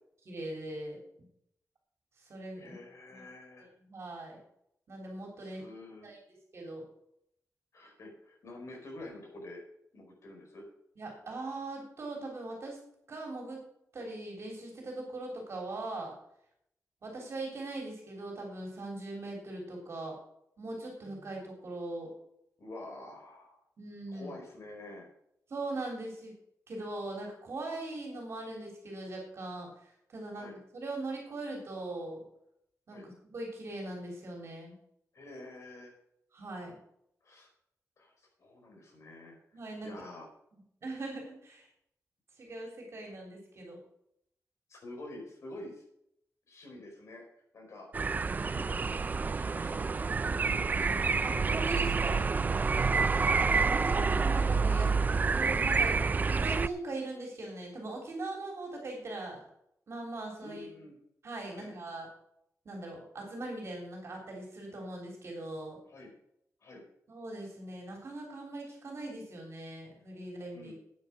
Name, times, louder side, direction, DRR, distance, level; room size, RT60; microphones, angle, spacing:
voice 1, 0.3-1.3 2.2-2.7 3.1-3.2 3.6-4.4 4.9-5.6 6.0-6.8 11.0-12.8 13.1-13.6 13.9-16.1 17.0-20.2 20.6-22.1 23.8-24.4 25.5-26.3 26.7-32.2 32.9-34.8 36.3-36.8 39.5-39.9 40.5-41.7 42.4-43.8 51.2-52.3 53.7-54.9 55.4-59.4 59.9-60.7 61.2-62.1 62.7-65.8 67.1-70.7, right 2 dB, 50° right, 0 dB, 3.5 m, -40 dB
voice 2, 2.5-3.7 5.4-6.1 7.7-9.6 9.9-10.6 22.6-23.6 24.1-25.1 30.3-30.6 32.9-33.1 35.1-35.9 37.2-37.5 38.0-38.1 38.4-39.3 39.8-40.3 44.7-45.8 46.5-47.2 47.5-47.9 48.4-48.8 49.1-49.8 52.8-53.1 60.4-61.0 61.5-61.7 65.8-66.1 66.6-66.8 70.5-70.7, left 2 dB, 55° left, 0 dB, 4.8 m, -47 dB
sound 1, 47.9-56.7, right 4 dB, 30° right, 0.3 m, -28 dB
10.0 x 9.2 x 6.0 m, 0.74 s
wide cardioid pair, 165°, 6 cm